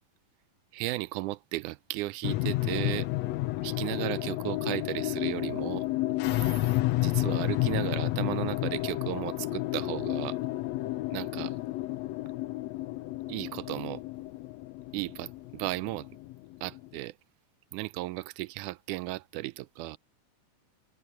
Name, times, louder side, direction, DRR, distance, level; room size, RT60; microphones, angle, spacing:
voice 1, 0.7-3.1 3.6-5.9 7.0-10.4 11.1-11.6 13.3-14.0 14.9-16.1 16.6-17.1 17.7-20.0, right 19 dB, 85° right, 2.0 m, -35 dB
sound 1, 2.2-16.9, left 17 dB, 75° left, 1.7 m, -31 dB
omnidirectional pair, 3.5 m